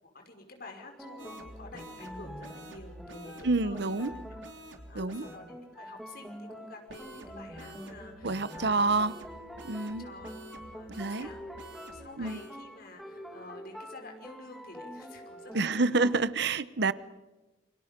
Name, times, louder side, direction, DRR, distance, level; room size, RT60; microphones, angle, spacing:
voice 1, 0.0-3.8 4.1-4.4 4.9-9.0 10.0-10.4 10.7-16.3, left 2 dB, 55° left, 4 dB, 5.4 m, -50 dB
sound 1, 0.7-16.1, equal, ahead, 1.8 m, -46 dB
sound 2, 1.2-5.4 6.9-12.5, right 1 dB, 80° right, 3.6 m, -49 dB
voice 2, 3.4-4.1 4.9-5.2 8.2-9.1 9.6-10.1 11.0-11.3 12.2-12.4 15.5-16.9, right 3 dB, 65° right, 15 dB, 0.9 m, -28 dB
28.5 x 25.0 x 5.3 m, 1.1 s
head